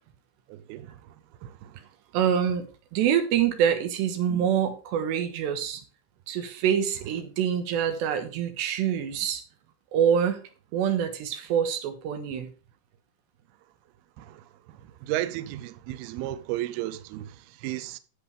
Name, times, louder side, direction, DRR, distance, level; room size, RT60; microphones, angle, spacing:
voice 1, 0.5-1.9 12.3-12.4 14.2-18.0, right 15 dB, 90° right, 2.2 m, -35 dB
voice 2, 2.1-2.7 2.9-5.8 6.3-9.4 9.9-10.4 10.7-12.5, right 8 dB, 70° right, 3.4 m, -25 dB
11.5 x 7.9 x 3.4 m
omnidirectional pair, 5.4 m